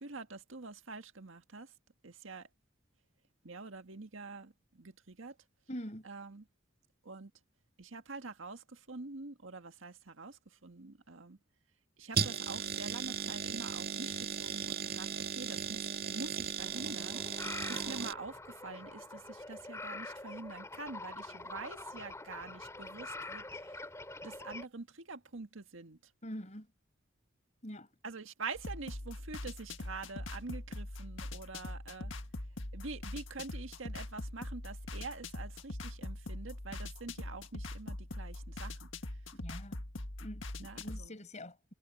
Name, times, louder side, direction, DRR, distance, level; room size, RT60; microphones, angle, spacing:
voice 1, 0.0-1.7 2.0-2.5 3.4-5.4 6.0-6.4 7.0-7.3 7.8-11.4 12.0-23.8 24.2-26.0 28.0-32.1 32.7-38.9 40.6-41.1, right 3 dB, 85° right, 1.7 m, -46 dB
voice 2, 5.7-6.1 26.2-26.7 27.6-27.9 39.3-39.8 40.2-41.7, equal, 35° left, 6.5 m, -45 dB
sound 1, 12.1-18.1, right 6 dB, 50° right, 2.3 m, -36 dB
sound 2, 16.6-24.7, left 2 dB, 15° left, 2.8 m, -45 dB
sound 3, 28.5-41.1, left 1 dB, 75° left, 1.8 m, -42 dB
head